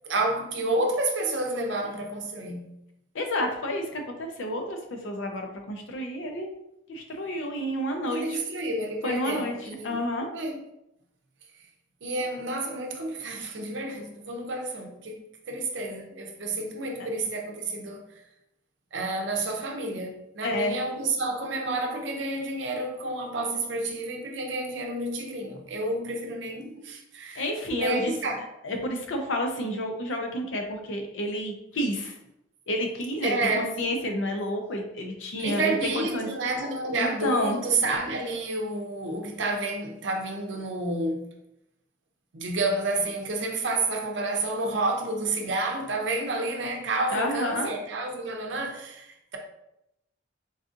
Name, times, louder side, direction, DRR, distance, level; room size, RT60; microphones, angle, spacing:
voice 1, 0.0-2.7 8.1-10.0 10.3-10.6 12.0-18.0 18.9-27.4 27.8-28.4 33.2-33.7 35.4-41.3 42.3-49.4, right 2 dB, 65° right, 0.6 m, -30 dB
voice 2, 3.1-6.5 6.9-8.4 9.0-10.3 17.0-17.1 20.4-20.8 27.4-28.1 28.6-32.1 32.7-36.3 37.0-37.6 47.1-47.7, left 1 dB, 80° left, 0.6 m, -30 dB
4.0 x 2.5 x 2.5 m
head